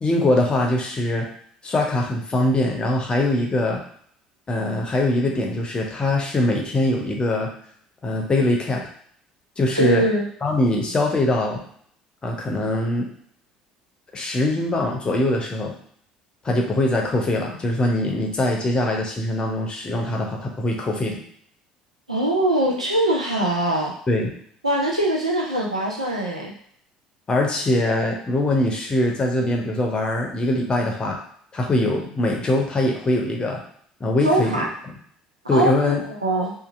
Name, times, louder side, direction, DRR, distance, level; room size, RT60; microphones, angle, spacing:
voice 1, 0.0-1.3 1.6-3.8 4.5-7.5 8.0-8.8 9.6-10.0 10.4-11.6 12.2-13.1 14.1-15.8 16.4-21.2 24.1-24.3 27.3-31.2 31.5-33.6 34.0-34.7 35.5-36.0, left 1 dB, 25° left, 0 dB, 0.7 m, -22 dB
voice 2, 9.8-10.3 22.1-23.9 24.6-26.5 34.2-34.7 35.4-36.5, right 1 dB, 90° right, -1 dB, 0.5 m, -22 dB
2.7 x 2.5 x 2.5 m, 0.63 s
figure-of-eight pair, 60°, 3 cm